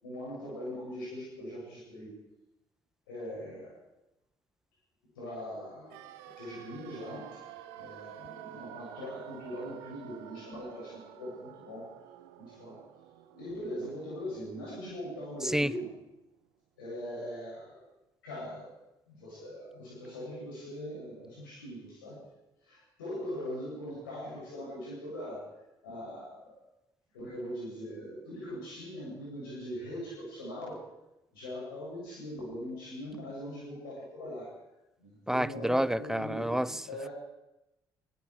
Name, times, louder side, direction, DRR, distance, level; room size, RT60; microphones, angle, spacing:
voice 1, 0.0-2.1 3.1-3.7 5.1-6.1 6.4-7.4 7.8-11.9 12.4-12.8 13.3-15.9 16.8-17.8 18.2-18.7 19.1-22.2 22.6-25.5 25.8-26.6 27.1-30.8 31.3-34.5 35.0-37.1, equal, 75° left, 7.6 m, -41 dB
sound 1, 5.9-15.8 16.1-16.2, right 11 dB, 70° right, 1.3 m, -50 dB
voice 2, 35.3-36.7, equal, 5° right, 0.6 m, -28 dB
24.5 x 22.5 x 4.9 m
figure-of-eight pair, 45°, 12 cm